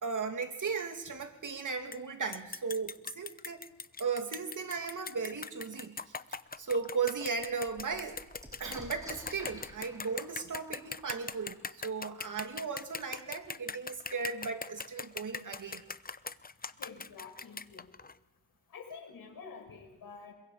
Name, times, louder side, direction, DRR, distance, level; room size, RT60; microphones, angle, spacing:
voice 1, 0.0-3.6 4.0-6.1 6.6-8.2 8.6-15.8, right 5 dB, 60° right, 5 dB, 2.7 m, -36 dB
sound 1, 1.9-2.0 2.3-18.2, left 4 dB, 25° left, 0.8 m, -41 dB
sound 2, 6.0-6.1 6.6-6.7 6.9-12.5 13.4-13.5 13.8-14.4, equal, 10° right, 6.2 m, -53 dB
voice 2, 16.8-17.9 18.7-20.3, left 5 dB, 85° left, 3 dB, 5.4 m, -48 dB
27.0 x 22.5 x 5.1 m, 1.0 s
cardioid pair, 55°, 35 cm